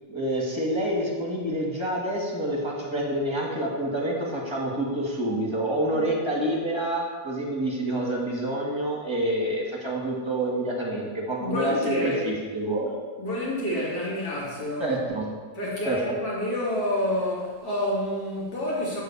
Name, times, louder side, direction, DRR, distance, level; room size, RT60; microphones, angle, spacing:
voice 1, 0.1-13.0 14.8-15.3 15.8-16.0, right 1 dB, 15° right, -3 dB, 1.8 m, -27 dB
voice 2, 11.4-12.3 13.2-14.9 15.5-19.0, left 1 dB, 65° left, -6 dB, 2.9 m, -28 dB
8.7 x 4.1 x 6.8 m, 1.4 s
omnidirectional pair, 1.7 m